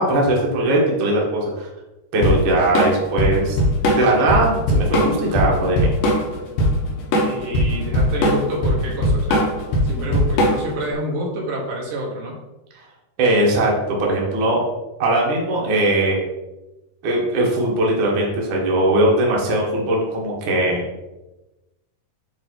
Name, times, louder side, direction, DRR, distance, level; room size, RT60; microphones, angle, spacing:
voice 1, 0.0-1.7 2.1-3.6 3.9-6.0 13.2-13.7 14.0-14.6 15.0-16.2 17.0-20.9, right 1 dB, 90° right, -3 dB, 1.0 m, -19 dB
Drum kit / Drum, 2.2-10.8, equal, 65° left, 2.9 m, -19 dB
voice 2, 7.1-9.6 9.8-12.4, right 1 dB, 60° right, -2 dB, 2.6 m, -28 dB
8.0 x 3.9 x 4.5 m, 1.0 s
omnidirectional pair, 4.9 m